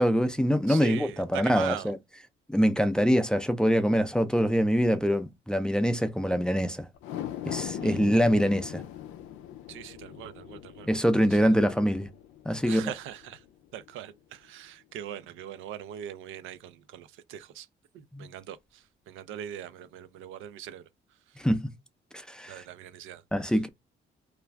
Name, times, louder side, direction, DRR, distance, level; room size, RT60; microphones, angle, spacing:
voice 1, 0.0-2.0 2.5-6.9 7.5-8.8 10.9-12.1 12.5-12.9 18.1-18.3 21.4-21.7 22.1-22.6 23.3-23.7, equal, 5° left, 0.4 m, -24 dB
voice 2, 0.7-1.9 7.8-8.0 9.7-10.9 11.3-11.6 12.7-13.4 13.7-17.7 17.9-20.9 21.3-21.4 22.5-23.2, right 10 dB, 85° right, 0.4 m, -41 dB
sound 1, 6.9-13.5 13.9-14.0, left 11 dB, 90° left, 0.4 m, -40 dB
2.4 x 2.3 x 3.1 m
cardioid pair, 90°, 20 cm